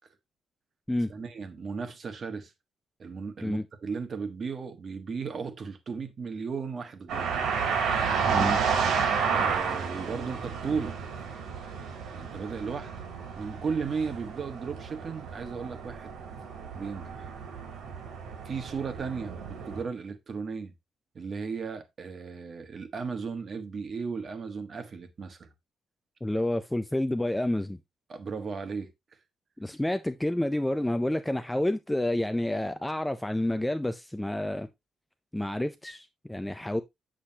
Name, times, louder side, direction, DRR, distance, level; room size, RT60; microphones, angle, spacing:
voice 1, 1.1-2.5 3.0-7.4 9.3-11.2 12.1-12.9 13.3-16.3 16.7-17.3 18.4-19.4 19.7-20.7 21.1-25.5 28.1-28.9, right 5 dB, 35° right, 1.3 m, -35 dB
sound 1, 7.1-19.8, right 6 dB, 80° right, 3.8 m, -31 dB
voice 2, 8.3-8.6 26.2-27.8 29.6-34.7 35.3-36.8, left 1 dB, 5° left, 0.4 m, -29 dB
8.4 x 7.6 x 2.8 m
cardioid pair, 180°, 0 cm